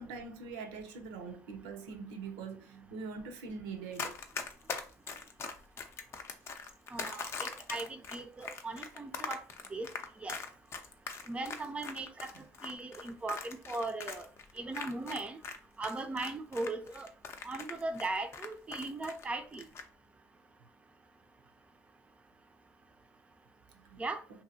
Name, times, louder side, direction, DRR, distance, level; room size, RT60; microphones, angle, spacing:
voice 1, 0.0-4.2 5.5-5.6 12.3-12.4 23.7-24.0, right 4 dB, 85° right, 0.6 m, -43 dB
Run, 3.9-15.6 15.8-19.2 19.5-19.8, left 5 dB, 40° left, 0.5 m, -41 dB
voice 2, 6.9-9.4 9.7-9.9 10.2-10.4 11.3-12.3 12.6-14.3 14.6-15.4 15.8-17.1 17.4-19.6 24.0-24.2, right 2 dB, 20° right, 0.4 m, -38 dB
2.7 x 2.6 x 2.7 m
supercardioid pair, 95°, 7 cm